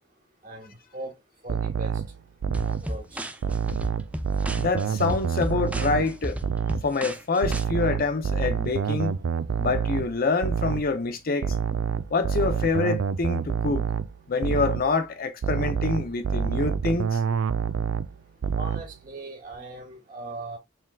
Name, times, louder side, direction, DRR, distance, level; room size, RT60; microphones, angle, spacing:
voice 1, 0.4-1.1 1.4-1.9 2.6-3.3 18.6-20.6, right 2 dB, 45° right, 2.0 m, -39 dB
sound 1, 1.5-2.9 3.4-6.2 6.4-6.9 7.4-10.9 11.4-14.2 14.4-14.9 15.4-18.2 18.4-18.9, right 6 dB, 80° right, 0.4 m, -27 dB
sound 2, 2.5-7.6, right 1 dB, 5° right, 0.4 m, -34 dB
voice 2, 4.6-6.4 6.8-9.1 9.6-11.5 12.1-13.8 14.3-17.2, left 4 dB, 50° left, 0.6 m, -26 dB
4.5 x 3.7 x 2.3 m
head